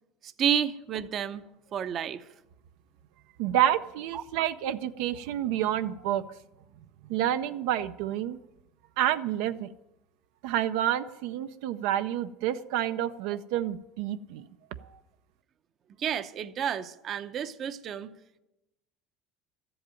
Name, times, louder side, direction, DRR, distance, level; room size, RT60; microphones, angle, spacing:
voice 1, 0.2-1.4 1.7-2.2 4.1-4.2 16.0-18.1, right 9 dB, 40° right, 12 dB, 0.7 m, -30 dB
voice 2, 3.4-6.2 7.1-8.4 9.0-9.7 10.4-14.5 14.8-14.9, right 11 dB, 75° right, 10 dB, 0.5 m, -29 dB
13.0 x 7.8 x 9.0 m, 0.93 s
cardioid pair, 140°, 0 cm